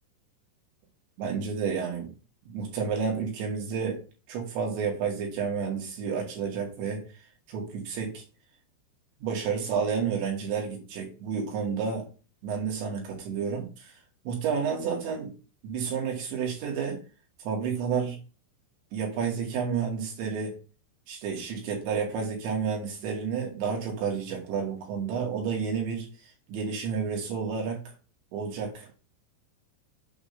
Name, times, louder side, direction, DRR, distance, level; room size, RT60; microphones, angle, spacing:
voice 1, 1.2-2.1 2.5-7.0 7.5-8.2 9.2-12.1 12.4-13.9 14.3-15.3 15.6-17.0 17.4-18.2 18.9-20.6 21.1-26.1 26.5-27.9 28.3-28.9, right 6 dB, 70° right, 1 dB, 4.5 m, -30 dB
8.6 x 3.8 x 6.8 m, 0.34 s
omnidirectional pair, 5.4 m